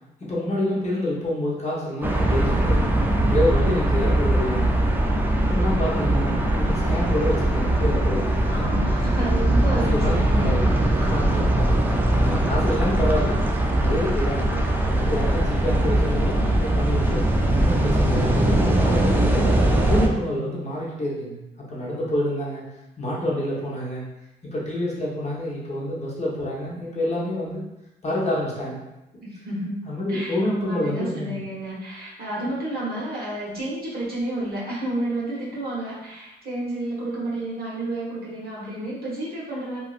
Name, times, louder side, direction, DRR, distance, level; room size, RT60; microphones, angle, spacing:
voice 1, 0.2-3.0 3.3-4.8 5.5-8.8 9.5-14.5 14.8-17.2 17.5-21.4 21.7-22.6 23.0-24.0 24.5-27.6 28.0-28.8 29.8-31.4, left 1 dB, 35° left, -6 dB, 1.0 m, -28 dB
sound 1, 2.0-20.1, right 1 dB, 10° right, 0.4 m, -21 dB
voice 2, 8.5-10.6 11.0-11.2 29.2-39.8, right 1 dB, 50° right, -6 dB, 1.3 m, -30 dB
3.0 x 2.6 x 2.4 m, 0.93 s
cardioid pair, 90°, 20 cm